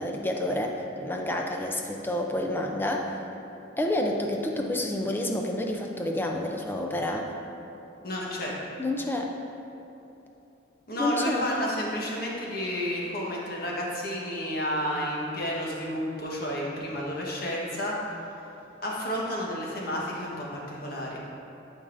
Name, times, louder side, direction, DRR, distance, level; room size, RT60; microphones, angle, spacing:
voice 1, 0.0-3.1 3.8-7.3 8.8-9.3 11.0-11.4, left 1 dB, 10° left, 1 dB, 0.5 m, -29 dB
voice 2, 8.0-8.5 10.9-17.9 18.8-21.2, equal, 50° left, -4 dB, 1.3 m, -31 dB
11.5 x 5.3 x 2.6 m, 2.9 s
head